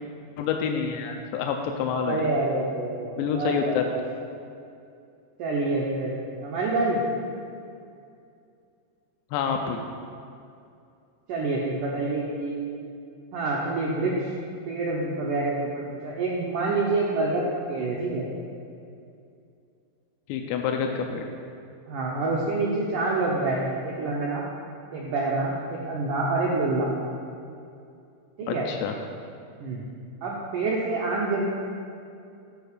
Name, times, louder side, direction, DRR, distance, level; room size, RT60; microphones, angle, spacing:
voice 1, 0.4-2.2 3.2-3.9 9.3-9.8 20.3-21.3 28.5-28.9, left 7 dB, 85° left, 3 dB, 2.8 m, -27 dB
voice 2, 2.0-4.0 5.4-7.0 11.3-12.6 13.3-14.3 14.7-18.2 21.9-24.5 24.9-26.9 28.4-28.7 29.6-29.8 30.2-31.5, right 2 dB, 80° right, -4 dB, 1.8 m, -27 dB
10.5 x 4.5 x 6.7 m, 2.5 s
omnidirectional pair, 4.9 m